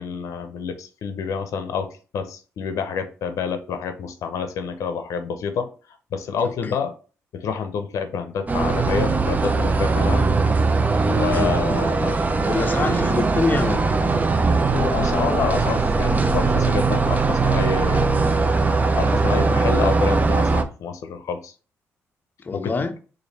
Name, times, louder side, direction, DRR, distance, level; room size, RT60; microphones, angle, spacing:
voice 1, 0.0-5.7 6.1-6.9 7.3-10.3 11.1-12.2 14.7-18.3 19.0-21.5 22.5-22.8, left 6 dB, 75° left, 0.6 m, -28 dB
voice 2, 6.4-6.8 11.3-11.6 12.4-13.8 22.4-23.0, left 3 dB, 35° left, 0.6 m, -25 dB
sound 1, 8.5-20.6, right 3 dB, 30° right, 0.5 m, -20 dB
3.2 x 2.6 x 4.1 m
cardioid pair, 80°, 6 cm